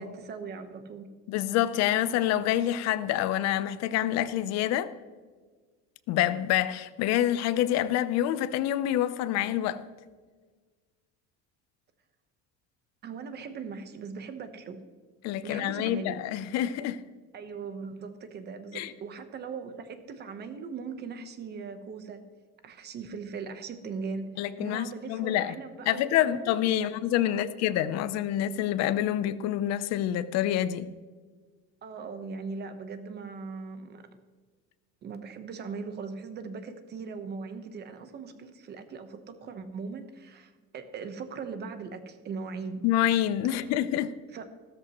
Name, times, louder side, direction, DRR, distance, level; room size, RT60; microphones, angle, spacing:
voice 1, 0.0-1.1 13.0-14.8 15.4-16.2 17.3-22.2 22.6-24.3 24.6-26.9 27.3-27.5 31.8-34.0 35.0-42.8 43.6-43.7 44.3-44.4, right 5 dB, 35° right, 1.0 m, -39 dB
voice 2, 1.3-4.9 6.1-9.8 15.2-17.0 18.7-18.9 24.4-25.6 25.9-30.9 42.8-44.1, left 12 dB, 55° left, 0.7 m, -27 dB
14.0 x 13.5 x 3.1 m
cardioid pair, 170°, 31 cm